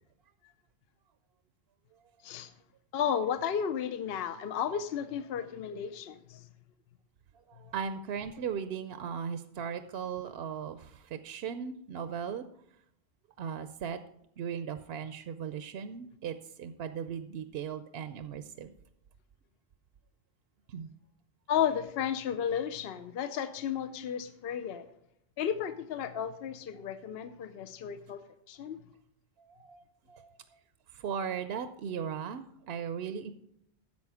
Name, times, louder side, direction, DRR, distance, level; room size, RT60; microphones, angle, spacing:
voice 1, 2.9-6.5 21.5-24.9 25.4-28.2 28.5-28.8, left 8 dB, 70° left, 10 dB, 0.8 m, -33 dB
voice 2, 7.5-12.5 13.4-14.0 14.4-18.7 20.7-20.9 29.5-29.8 30.1-30.4 30.9-33.3, right 7 dB, 70° right, 10 dB, 0.8 m, -37 dB
10.5 x 7.4 x 4.8 m, 0.73 s
omnidirectional pair, 1.1 m